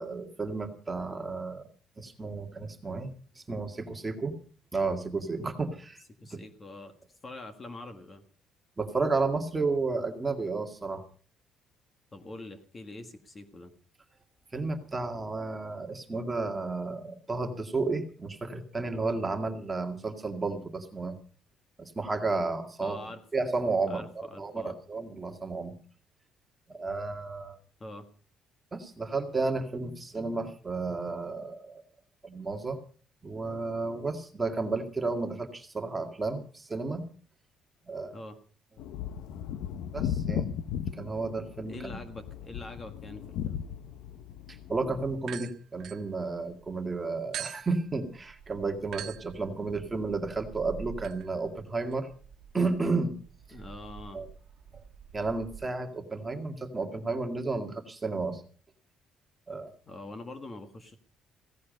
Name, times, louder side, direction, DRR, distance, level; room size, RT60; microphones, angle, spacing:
voice 1, 0.0-1.7 2.0-3.1 3.4-4.4 4.7-6.0 6.3-6.4 8.8-11.0 14.5-21.2 21.8-23.0 23.3-25.8 26.7-27.6 28.7-31.8 32.2-32.8 33.2-37.1 37.9-38.1 39.9-40.5 41.0-42.0 44.5-52.1 52.5-53.1 54.1-54.3 55.1-58.4 59.5-59.7, right 3 dB, 15° right, 5 dB, 2.1 m, -32 dB
voice 2, 6.2-8.2 12.1-13.7 22.8-23.2 23.9-24.7 27.8-28.1 38.1-38.4 41.6-43.6 53.5-54.2 59.9-61.0, left 2 dB, 20° left, 8 dB, 1.6 m, -44 dB
sound 1, 38.8-45.2, left 9 dB, 85° left, 0.9 m, -36 dB
sound 2, 45.2-46.7 47.3-55.6, right 9 dB, 55° right, 1.3 m, -45 dB
16.5 x 16.0 x 5.3 m, 0.41 s
cardioid pair, 165°, 0 cm